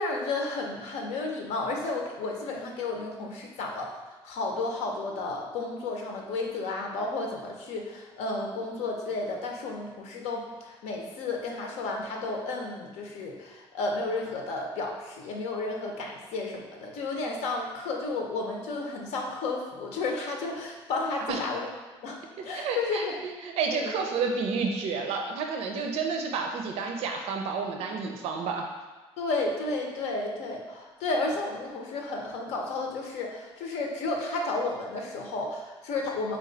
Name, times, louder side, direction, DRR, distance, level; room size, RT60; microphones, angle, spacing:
voice 1, 0.0-4.0 4.2-21.7 22.0-23.2 23.7-23.9 29.2-36.4, left 3 dB, 80° left, 1 dB, 0.7 m, -32 dB
voice 2, 22.5-28.7, right 5 dB, 70° right, 3 dB, 0.5 m, -30 dB
4.2 x 2.3 x 3.9 m, 1.2 s
cardioid pair, 130°, 11 cm